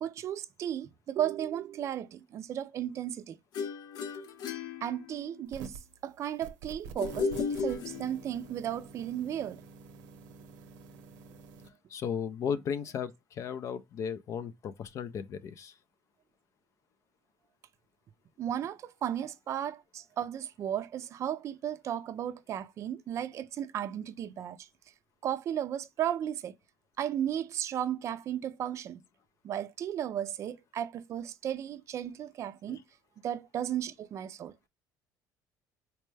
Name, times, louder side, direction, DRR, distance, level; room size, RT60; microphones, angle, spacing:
voice 1, 0.0-3.4 4.8-9.6 18.4-24.7 25.2-26.5 27.0-29.0 29.4-32.8 33.2-34.5, right 10 dB, 40° right, 0.4 m, -35 dB
sound 1, 3.5-5.5 7.0-8.5, left 5 dB, 70° left, 0.7 m, -35 dB
sound 2, 5.5-5.9 6.4-11.7, right 5 dB, 90° right, 0.7 m, -48 dB
voice 2, 11.9-15.8 32.7-32.8, left 7 dB, 45° left, 0.4 m, -35 dB
4.2 x 2.2 x 3.1 m
cardioid pair, 130°, 7 cm